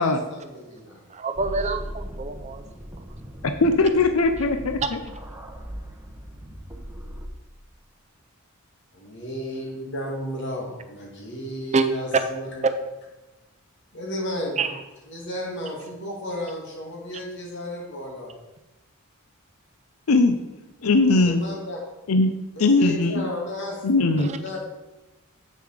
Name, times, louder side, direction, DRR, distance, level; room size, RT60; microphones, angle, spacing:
voice 1, 0.0-1.0 8.9-12.6 13.9-14.6 15.1-18.3 21.2-21.8 22.6-24.7, left 1 dB, 55° left, -1 dB, 2.4 m, -33 dB
voice 2, 1.1-2.6 4.8-4.9 11.7-11.8 12.1-12.2 12.6-12.7 14.6-14.7 24.2-24.4, right 4 dB, 30° right, 8 dB, 0.6 m, -25 dB
sound 1, 1.4-7.3, equal, 10° right, 1.0 m, -38 dB
voice 3, 3.6-5.0 20.1-20.4 20.8-21.4 22.1-22.3 22.6-23.2 23.8-24.3, left 3 dB, 90° left, 7 dB, 0.6 m, -19 dB
7.7 x 6.9 x 5.0 m, 1.1 s
head